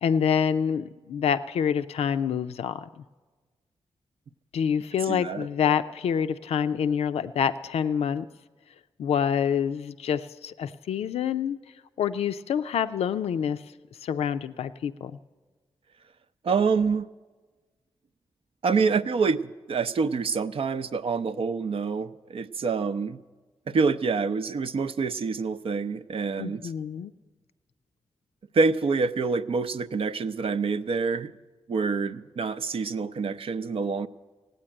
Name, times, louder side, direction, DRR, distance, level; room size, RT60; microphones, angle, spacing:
voice 1, 0.0-2.9 4.5-8.3 9.0-11.6 12.0-13.6 14.0-15.1 26.4-27.1, left 8 dB, 85° left, 11 dB, 0.4 m, -27 dB
voice 2, 5.1-5.5 16.4-17.1 18.6-23.2 23.7-26.6 28.5-31.3 31.7-34.1, right 4 dB, 65° right, 10 dB, 0.6 m, -26 dB
16.5 x 9.1 x 8.8 m, 1.3 s
cardioid pair, 55°, 10 cm